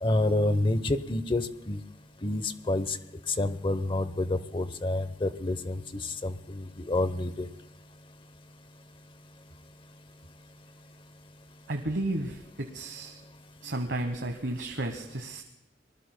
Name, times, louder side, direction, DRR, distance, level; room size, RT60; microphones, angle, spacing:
voice 1, 0.0-1.8 2.2-3.0 3.3-7.5, left 2 dB, 30° left, 12 dB, 0.8 m, -28 dB
voice 2, 11.7-13.2 13.6-15.4, right 1 dB, 70° right, 5 dB, 1.2 m, -33 dB
25.0 x 20.0 x 2.2 m, 0.88 s
head